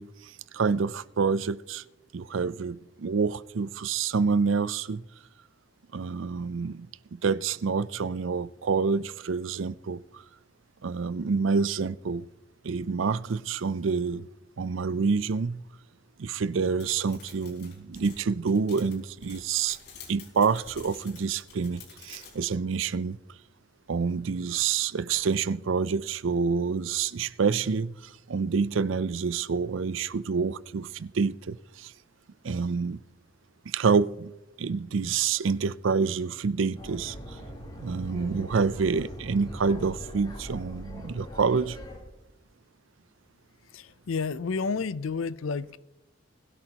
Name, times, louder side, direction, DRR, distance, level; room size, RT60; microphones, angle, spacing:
voice 1, 0.0-1.8 2.1-5.0 5.9-10.2 10.8-12.3 12.6-14.3 14.6-15.6 16.2-19.8 20.1-23.2 23.9-31.9 32.4-33.0 33.7-34.3 34.6-37.4 37.8-41.8, right 5 dB, 75° right, 0.5 m, -27 dB
sound 1, 16.8-22.4, left 5 dB, 55° left, 4.3 m, -49 dB
sound 2, 36.7-42.0, equal, 20° left, 3.6 m, -41 dB
voice 2, 43.7-45.8, left 4 dB, 90° left, 0.5 m, -31 dB
21.0 x 12.0 x 2.9 m
head